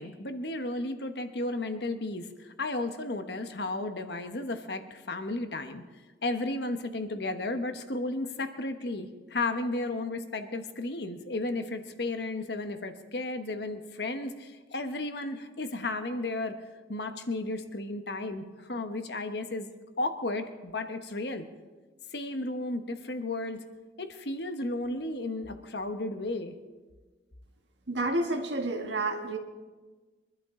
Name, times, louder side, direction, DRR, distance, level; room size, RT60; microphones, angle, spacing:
voice 1, 0.0-5.8 6.2-16.6 16.9-19.7 20.0-21.5 22.1-23.6 24.0-26.5, left 2 dB, 65° left, 8 dB, 1.2 m, -33 dB
voice 2, 27.9-29.4, right 2 dB, 75° right, 4 dB, 1.6 m, -30 dB
24.0 x 12.0 x 3.8 m, 1.3 s
head